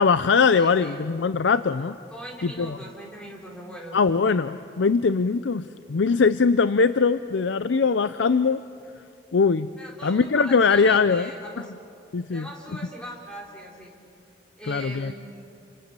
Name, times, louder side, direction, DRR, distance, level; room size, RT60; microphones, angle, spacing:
voice 1, 0.0-2.0 2.4-2.8 3.9-8.6 9.3-9.7 10.0-11.3 12.1-12.5 14.7-15.1, left 5 dB, 85° left, 13 dB, 0.5 m, -21 dB
voice 2, 0.5-1.0 2.1-4.2 9.8-11.7 12.3-13.9 14.6-15.1, right 1 dB, 5° left, -2 dB, 3.8 m, -40 dB
30.0 x 25.5 x 6.9 m, 2.5 s
head